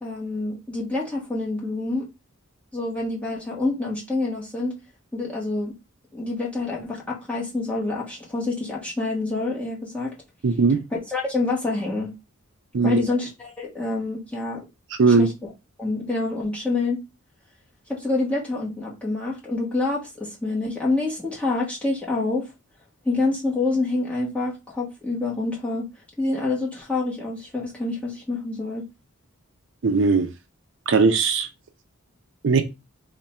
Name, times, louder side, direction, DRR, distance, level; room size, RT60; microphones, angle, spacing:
voice 1, 0.0-2.1 2.7-4.8 5.1-5.7 6.1-10.1 10.9-12.1 12.8-14.6 15.2-15.3 15.8-17.0 17.9-22.5 23.0-25.8 26.2-28.8, left 2 dB, 5° left, 1.0 m, -27 dB
voice 2, 10.4-10.8 12.7-13.0 15.0-15.3 29.8-30.3 30.9-31.5 32.4-32.6, right 4 dB, 55° right, 0.4 m, -18 dB
3.4 x 2.2 x 4.2 m
head